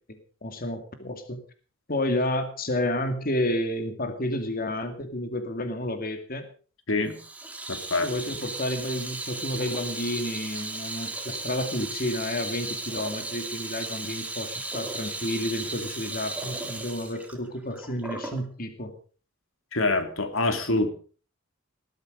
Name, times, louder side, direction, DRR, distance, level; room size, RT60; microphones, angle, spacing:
voice 1, 0.4-1.4 1.9-6.5 8.0-18.9, left 1 dB, 45° left, 7 dB, 2.5 m, -30 dB
Water tap faucet / Sink (filling or washing), 7.1-18.4, right 2 dB, 5° right, 2.7 m, -36 dB
voice 2, 7.7-8.1 19.7-20.9, left 2 dB, 75° left, 8 dB, 2.9 m, -25 dB
20.0 x 13.5 x 5.1 m, 0.40 s
head